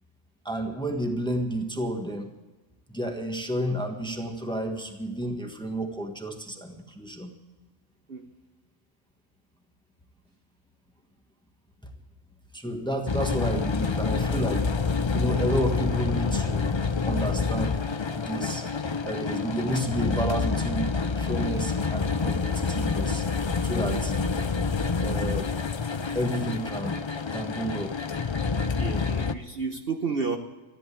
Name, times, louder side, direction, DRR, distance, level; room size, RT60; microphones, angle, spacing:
voice 1, 0.4-2.3 2.9-7.3 12.5-16.7 17.0-17.8 18.1-18.7 19.0-20.9 21.1-23.2 23.6-24.1 25.0-25.5 26.1-27.0 27.3-27.9, equal, 5° left, 4 dB, 1.3 m, -31 dB
sound 1, 13.1-29.3, left 4 dB, 45° left, 0.3 m, -27 dB
voice 2, 28.8-30.4, right 5 dB, 50° right, 4 dB, 1.1 m, -31 dB
14.0 x 10.5 x 8.4 m, 1.2 s
omnidirectional pair, 1.4 m